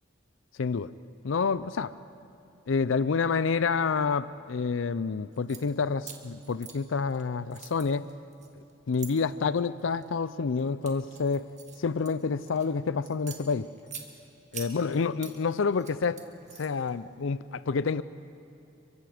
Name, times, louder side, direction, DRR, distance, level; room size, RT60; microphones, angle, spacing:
voice 1, 0.6-0.9 1.2-1.9 2.7-8.1 8.9-11.5 11.8-13.7 14.5-16.2 16.6-18.0, left 5 dB, 70° left, 16 dB, 0.5 m, -28 dB
sound 1, 5.3-5.6 6.0-7.2 7.5-9.1 9.8-10.1 10.6-12.7 13.1-14.1 14.5-15.4 15.7-16.9, right 8 dB, 35° right, 2.0 m, -44 dB
29.0 x 23.5 x 5.0 m, 2.8 s
head